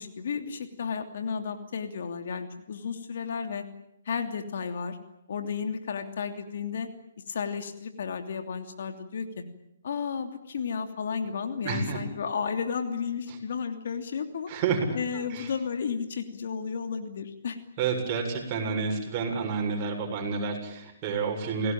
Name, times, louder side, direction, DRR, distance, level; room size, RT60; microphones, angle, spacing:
voice 1, 0.0-3.7 4.0-5.0 5.3-6.9 7.3-9.4 9.8-14.5 14.9-17.6, left 6 dB, 60° left, 7 dB, 2.9 m, -33 dB
voice 2, 11.6-12.0 14.5-15.5 17.8-21.7, right 5 dB, 30° right, 2 dB, 7.4 m, -29 dB
28.0 x 18.5 x 9.0 m, 0.79 s
figure-of-eight pair, 135°, 0 cm